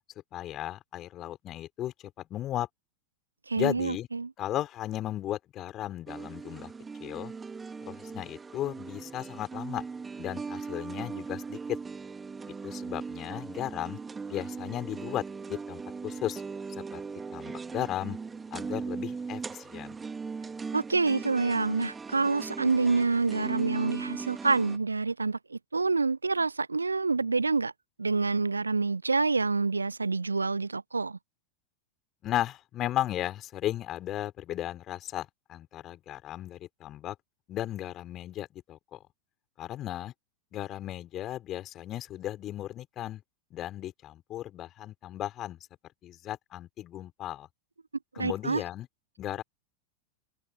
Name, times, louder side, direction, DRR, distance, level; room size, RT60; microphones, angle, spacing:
voice 1, 0.3-1.9 2.3-2.7 3.5-4.1 4.4-6.7 7.0-7.3 7.9-9.9 10.2-11.8 12.6-14.0 14.3-16.4 16.7-17.0 17.3-18.2 18.5-20.0 32.2-37.2 37.5-39.0 39.6-40.1 40.5-43.2 43.5-45.6 46.0-47.5 48.1-48.9 49.2-49.4, left 13 dB, 30° left, 4.4 m, -35 dB
voice 2, 3.5-4.3 20.7-27.7 28.0-31.2 48.2-48.6, right 4 dB, 80° right, 0.8 m, -27 dB
sound 1, 6.1-24.8, right 5 dB, 15° right, 2.3 m, -39 dB
figure-of-eight pair, 90°, 0 cm